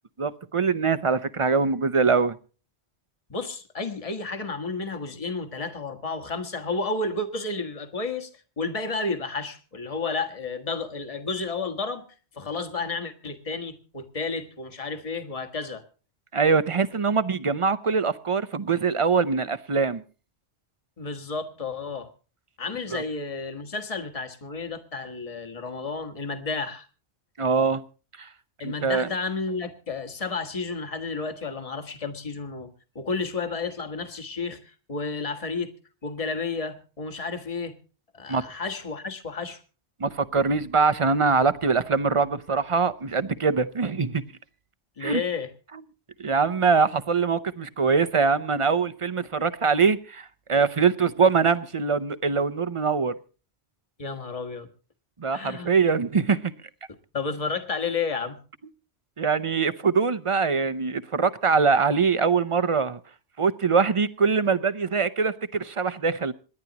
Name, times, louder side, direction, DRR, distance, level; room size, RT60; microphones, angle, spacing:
voice 1, 0.2-2.4 16.3-20.0 22.9-23.0 27.4-27.8 28.2-28.3 28.6-29.1 38.3-38.4 40.0-44.2 45.0-45.2 46.2-53.1 55.2-56.5 59.2-63.0 63.4-66.3, right 5 dB, 35° right, 0.6 m, -23 dB
voice 2, 3.3-8.3 8.6-12.0 12.3-15.8 21.0-22.1 22.6-26.9 28.6-35.7 36.0-37.8 38.1-39.6 45.0-45.5 54.0-54.7 55.3-55.7 57.1-58.4, left 4 dB, 30° left, 1.5 m, -31 dB
27.0 x 11.0 x 2.9 m
omnidirectional pair, 1.2 m